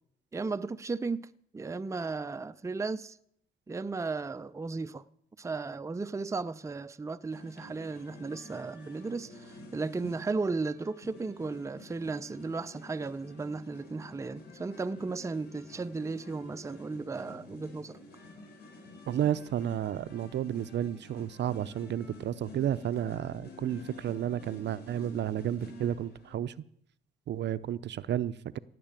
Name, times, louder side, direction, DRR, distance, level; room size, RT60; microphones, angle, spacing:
voice 1, 0.3-1.3 1.5-3.2 3.7-5.0 5.4-18.0, right 3 dB, 15° right, 0.5 m, -35 dB
sound 1, 7.3-26.3, left 2 dB, 55° left, 4.4 m, -50 dB
voice 2, 19.1-26.5 27.3-28.6, right 10 dB, 60° right, 0.6 m, -32 dB
17.0 x 6.7 x 8.9 m
cardioid pair, 90°, 20 cm